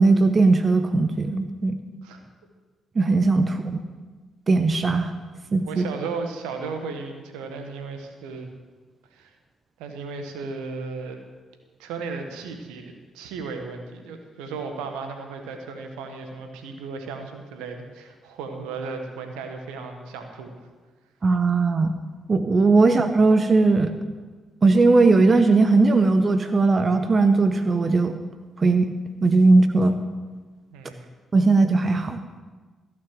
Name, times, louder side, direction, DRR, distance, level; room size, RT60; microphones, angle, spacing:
voice 1, 0.0-1.7 3.0-3.6 4.5-5.1 5.5-5.8 21.2-21.9 22.3-23.9 24.6-28.1 28.6-28.9 29.2-29.9 31.3-32.2, right 3 dB, 40° right, 9 dB, 0.8 m, -18 dB
voice 2, 5.6-8.5 9.1-9.3 9.8-11.2 11.8-20.5 30.7-31.1, right 4 dB, 75° right, 5 dB, 1.3 m, -35 dB
15.0 x 6.2 x 7.6 m, 1.4 s
hypercardioid pair, 40°, 0 cm